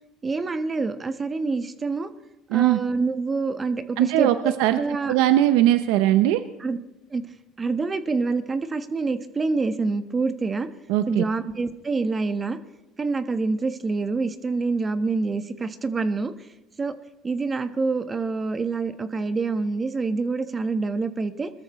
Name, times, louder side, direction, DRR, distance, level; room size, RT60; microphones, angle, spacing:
voice 1, 0.2-2.1 2.5-5.1 6.6-6.8 7.1-7.3 7.6-10.7 11.1-12.6 13.0-16.5 16.8-16.9 17.2-21.5, right 3 dB, 25° right, 9 dB, 1.2 m, -26 dB
voice 2, 4.0-4.8 5.1-6.4 10.9-11.2, right 13 dB, 80° right, 10 dB, 0.7 m, -20 dB
21.5 x 13.5 x 3.1 m, 1.0 s
supercardioid pair, 90°, 0 cm